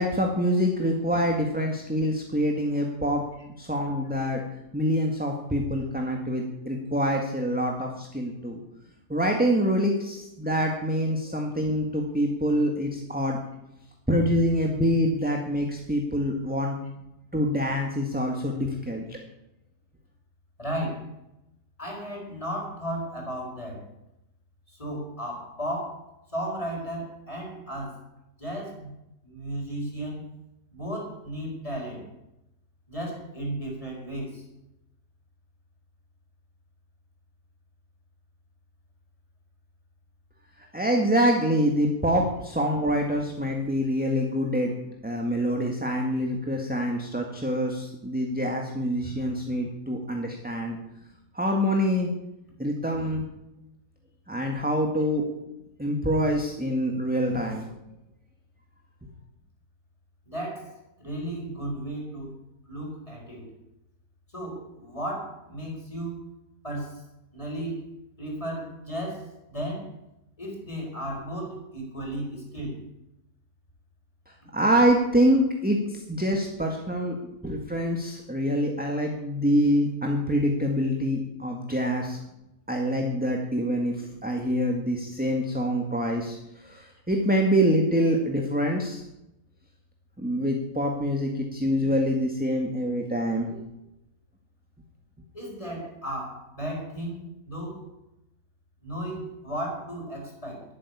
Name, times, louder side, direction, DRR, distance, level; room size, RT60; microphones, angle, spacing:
voice 1, 0.0-3.2 3.6-4.4 4.7-8.6 9.1-13.4 14.1-16.8 17.3-19.2 40.7-44.7 45.0-50.8 51.3-52.1 52.6-53.2 54.3-55.2 55.8-57.6 74.5-77.2 77.4-82.2 82.7-86.4 86.6-89.0 90.2-93.6, equal, 5° right, 1 dB, 1.6 m, -25 dB
voice 2, 20.6-21.1 21.8-23.9 24.7-26.1 26.3-28.0 28.4-28.9 29.2-30.3 30.7-32.1 32.9-34.4 60.3-62.3 62.7-63.5 64.3-66.3 66.6-67.0 67.3-67.8 68.2-69.9 70.4-72.9 95.3-97.9 98.8-100.6, right 1 dB, 20° left, 0 dB, 4.6 m, -34 dB
11.5 x 9.2 x 9.7 m, 0.89 s
omnidirectional pair, 1.7 m